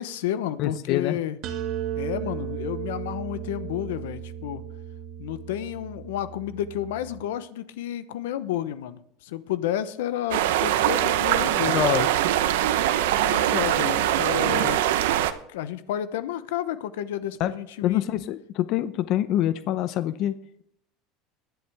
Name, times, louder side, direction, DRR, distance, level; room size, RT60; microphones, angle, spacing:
voice 1, 0.0-1.4 1.9-4.6 5.2-11.8 13.2-14.8 15.5-18.1, left 11 dB, 85° left, 13 dB, 0.8 m, -31 dB
voice 2, 0.6-1.2 11.7-12.1 17.4-17.5 17.8-20.3, left 12 dB, 60° left, 13 dB, 0.7 m, -25 dB
sound 1, 1.4-7.2, right 10 dB, 60° right, 1.8 m, -35 dB
sound 2, 10.3-15.3, right 12 dB, 85° right, 0.9 m, -22 dB
22.0 x 8.0 x 3.5 m, 0.70 s
supercardioid pair, 110°, 0 cm